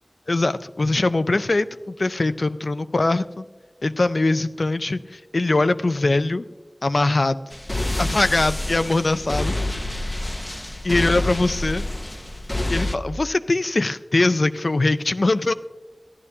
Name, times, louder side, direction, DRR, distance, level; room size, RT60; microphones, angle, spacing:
voice 1, 0.3-3.5 3.8-6.5 6.8-7.4 8.0-9.5 10.8-11.9 12.7-15.5, left 2 dB, 75° left, 12 dB, 0.4 m, -22 dB
sound 1, 7.5-12.9, left 1 dB, 30° left, 0.6 m, -27 dB
14.0 x 11.0 x 2.7 m, 1.1 s
wide cardioid pair, 50°, 0 cm